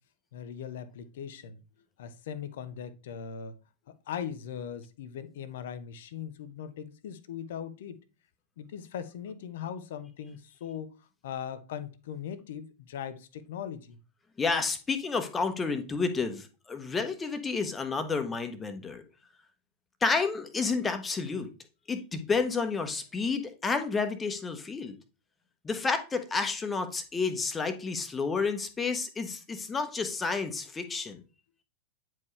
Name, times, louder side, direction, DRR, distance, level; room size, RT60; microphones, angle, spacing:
voice 1, 0.3-1.6 2.0-3.5 3.9-8.0 8.6-14.0, left 8 dB, 55° left, 0.8 m, -40 dB
voice 2, 14.4-19.0 20.0-21.5 21.9-25.0 25.6-31.2, left 4 dB, 15° left, 1.2 m, -30 dB
9.6 x 4.6 x 3.2 m
figure-of-eight pair, 90°, 0 cm